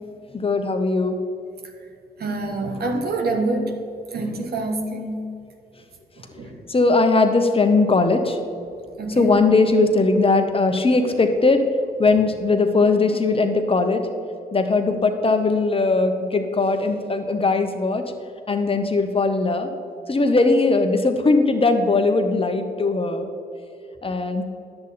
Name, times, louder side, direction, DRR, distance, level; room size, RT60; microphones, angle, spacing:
voice 1, 0.3-1.2 6.7-8.4 9.2-11.6 12.0-14.1 14.5-18.0 18.5-19.7 20.1-23.3 24.0-24.4, left 3 dB, 30° left, 6 dB, 1.1 m, -19 dB
voice 2, 2.2-3.7 4.1-5.2 6.4-6.5 9.0-9.4, right 2 dB, 65° right, 4 dB, 1.3 m, -26 dB
10.0 x 7.9 x 4.2 m, 2.6 s
supercardioid pair, 50°, 17 cm